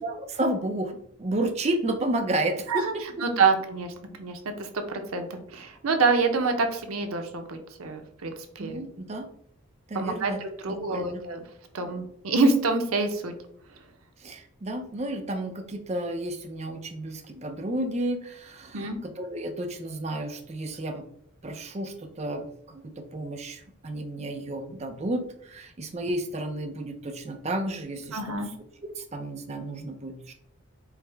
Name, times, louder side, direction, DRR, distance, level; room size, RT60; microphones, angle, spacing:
voice 1, 0.0-3.0 8.6-9.2 9.9-10.4 10.7-11.2 14.2-21.0 21.4-28.5 29.0-30.3, right 1 dB, 30° right, 5 dB, 0.4 m, -32 dB
voice 2, 3.2-3.9 4.2-8.8 9.9-10.3 10.6-11.4 11.7-13.3 18.7-19.0 28.1-28.5, right 4 dB, 90° right, 6 dB, 0.6 m, -26 dB
4.7 x 2.1 x 3.3 m, 0.69 s
head